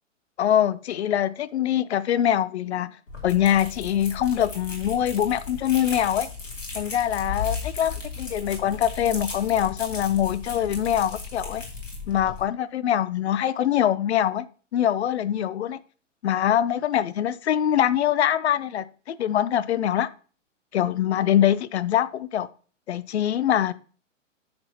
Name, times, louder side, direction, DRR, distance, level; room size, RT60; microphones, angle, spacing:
voice 1, 0.4-2.9 3.2-6.3 6.7-11.6 12.1-14.5 14.7-15.8 16.2-20.1 20.7-22.5 22.9-23.7, left 10 dB, 60° left, 0.6 m, -23 dB
sound 1, 3.1-12.4, left 4 dB, 80° left, 2.8 m, -36 dB
9.5 x 6.1 x 2.9 m
figure-of-eight pair, 115°, 38 cm